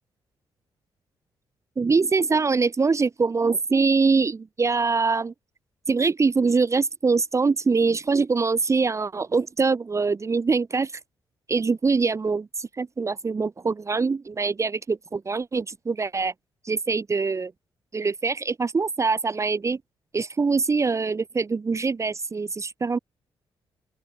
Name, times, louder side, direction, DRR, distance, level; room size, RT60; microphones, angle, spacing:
voice 1, 1.8-5.3 5.9-10.9 11.5-16.3 16.6-17.5 17.9-19.8 20.1-23.0, right 4 dB, 30° right, 0.5 m, -23 dB
open air
supercardioid pair, 60°, 10 cm